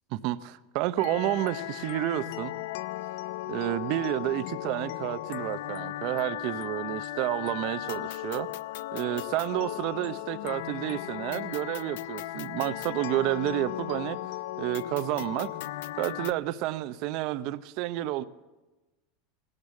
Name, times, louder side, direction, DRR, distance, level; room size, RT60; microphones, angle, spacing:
voice 1, 0.1-2.5 3.5-8.5 8.9-14.2 14.6-15.5 16.0-18.2, right 15 dB, 60° right, 0.7 m, -30 dB
sound 1, 1.0-16.3, left 15 dB, 75° left, 0.5 m, -36 dB
17.0 x 12.0 x 7.1 m
supercardioid pair, 125°, 0 cm